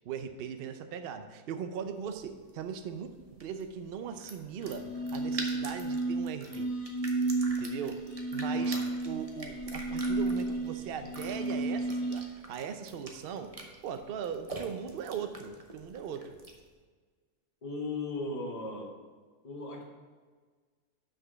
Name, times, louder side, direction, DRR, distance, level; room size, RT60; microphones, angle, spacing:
voice 1, 0.0-6.7 7.5-8.0 8.3-13.5 13.8-16.4, right 7 dB, 65° right, 8 dB, 0.6 m, -39 dB
sound 1, 1.9-16.7, right 2 dB, 30° right, 0.7 m, -47 dB
sound 2, 4.6-12.3, right 2 dB, 85° left, 2.5 m, -32 dB
voice 2, 8.5-8.8 17.6-18.9 19.4-19.8, left 2 dB, 25° left, -1 dB, 1.3 m, -37 dB
6.2 x 5.2 x 6.2 m, 1.5 s
omnidirectional pair, 1.6 m